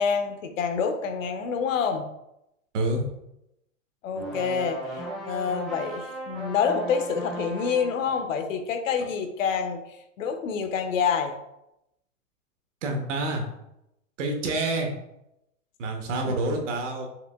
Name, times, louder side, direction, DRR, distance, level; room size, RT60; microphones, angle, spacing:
voice 1, 0.0-2.0 4.0-9.8 10.2-11.4 16.2-16.3, left 6 dB, 80° left, 7 dB, 0.7 m, -27 dB
voice 2, 2.7-3.1 12.8-13.4 14.2-14.9 15.8-17.1, right 2 dB, 65° right, 3 dB, 1.0 m, -27 dB
sound 1, 4.1-8.1, right 1 dB, ahead, 0.5 m, -36 dB
4.8 x 3.2 x 2.3 m, 0.85 s
hypercardioid pair, 150°, 38 cm